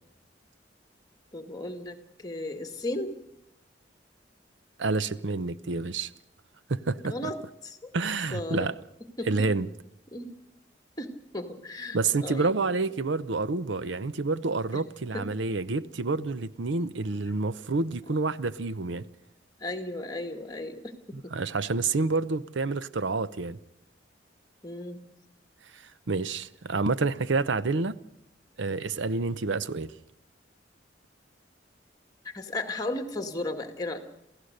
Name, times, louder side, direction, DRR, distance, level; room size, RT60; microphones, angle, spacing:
voice 1, 1.3-3.1 7.0-7.9 8.3-8.7 9.2-9.3 10.1-10.3 11.0-12.5 14.7-14.8 15.1-15.3 19.6-21.3 24.6-25.0 32.2-34.0, left 2 dB, 20° left, 1.9 m, -35 dB
voice 2, 4.8-6.1 6.7-7.1 7.9-8.7 9.3-9.7 11.9-19.1 21.1-23.6 25.7-28.0 28.6-29.9, right 3 dB, 90° right, 0.7 m, -28 dB
28.0 x 16.0 x 6.6 m
head